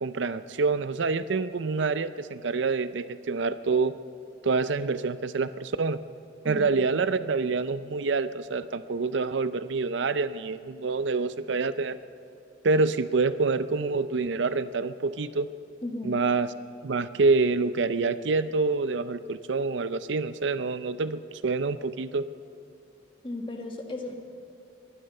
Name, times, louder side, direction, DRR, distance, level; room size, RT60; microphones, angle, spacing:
voice 1, 0.0-3.9 4.4-6.0 6.4-12.0 12.6-15.5 16.0-16.5 16.8-22.2, right 4 dB, 70° right, 13 dB, 0.5 m, -27 dB
voice 2, 15.8-16.2 23.2-24.2, left 1 dB, 25° left, 2 dB, 1.6 m, -35 dB
23.0 x 11.0 x 5.5 m, 2.7 s
head